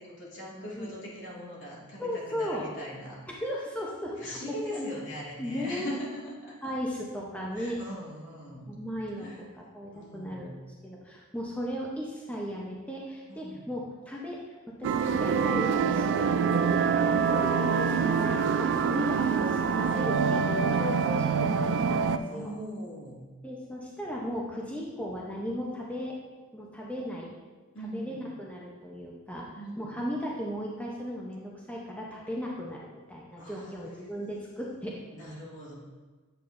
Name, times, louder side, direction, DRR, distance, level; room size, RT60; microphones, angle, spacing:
voice 1, 0.0-3.2 4.2-6.7 7.5-8.8 9.1-9.4 9.9-10.5 13.3-13.7 17.0-17.4 22.3-23.3 27.7-28.2 29.6-29.9 33.4-33.8 35.1-35.7, equal, 60° left, -5 dB, 2.2 m, -41 dB
voice 2, 2.0-2.6 3.3-4.4 4.7-4.9 5.4-6.0 6.6-7.8 8.7-9.3 9.7-10.5 10.8-14.4 14.8-22.5 23.4-26.1 26.5-27.3 27.9-32.8 33.1-35.0, equal, 5° left, -3 dB, 0.7 m, -36 dB
sound 1, 14.8-22.2, right 6 dB, 60° right, 0.3 m, -25 dB
8.6 x 7.4 x 2.6 m, 1.4 s
head